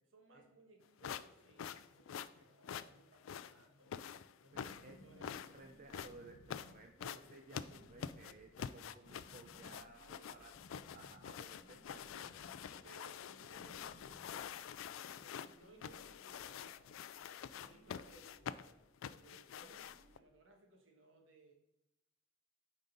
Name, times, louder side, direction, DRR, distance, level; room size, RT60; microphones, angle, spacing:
voice 1, 0.1-4.0 4.4-5.7 7.0-7.3 10.0-10.5 12.6-14.7 15.0-16.9 17.5-21.5, right 3 dB, 70° right, 3 dB, 1.4 m, -64 dB
sound 1, 1.0-20.2, left 8 dB, 85° left, 0.3 m, -47 dB
sound 2, 4.4-14.6, left 1 dB, 60° left, 0.8 m, -63 dB
sound 3, 4.5-20.3, right 1 dB, 20° right, 2.1 m, -70 dB
voice 2, 4.5-10.0 10.3-10.6 10.9-12.9, right 3 dB, 40° right, 3 dB, 0.5 m, -58 dB
9.3 x 4.0 x 3.9 m, 0.89 s
head